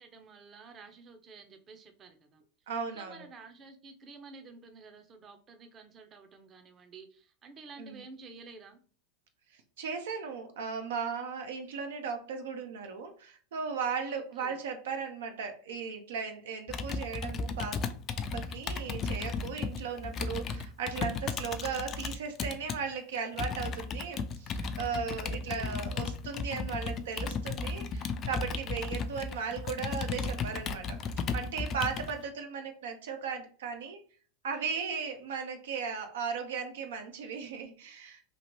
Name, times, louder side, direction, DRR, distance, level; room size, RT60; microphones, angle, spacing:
voice 1, 0.0-2.4 2.9-8.8 14.1-14.6 25.2-25.8 32.2-32.3, right 4 dB, 30° right, 6 dB, 0.6 m, -51 dB
voice 2, 2.7-3.1 7.8-8.0 9.8-17.8 18.3-31.0 31.3-34.0 34.4-38.2, right 6 dB, 85° right, 6 dB, 0.5 m, -36 dB
Computer keyboard, 16.7-22.8 23.4-32.1, left 4 dB, 35° left, 0.4 m, -35 dB
3.0 x 2.5 x 2.9 m, 0.41 s
hypercardioid pair, 115°, 0 cm